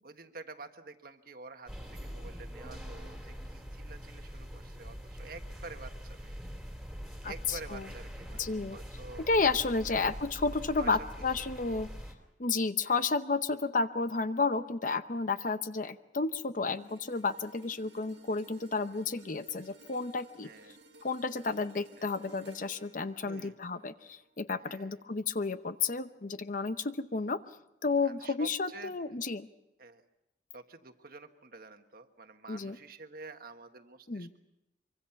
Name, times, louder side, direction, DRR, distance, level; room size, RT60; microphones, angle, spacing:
voice 1, 0.0-6.4 7.2-8.4 8.7-9.3 10.8-11.0 12.8-13.0 20.4-20.8 22.0-22.1 23.2-23.5 24.6-25.0 28.0-28.9 29.8-30.0 30.5-34.4, right 3 dB, 55° right, 7 dB, 1.4 m, -49 dB
sound 1, 1.7-12.1, equal, ahead, 2.9 m, -44 dB
voice 2, 7.2-7.9 8.4-8.8 9.2-11.9 12.4-20.5 21.0-27.4 27.8-29.5 32.5-32.8 34.1-34.3, left 4 dB, 45° left, 11 dB, 0.8 m, -32 dB
sound 2, 16.7-25.0 25.5-25.7, right 2 dB, 75° right, 1.8 m, -57 dB
24.5 x 24.5 x 5.8 m, 0.93 s
head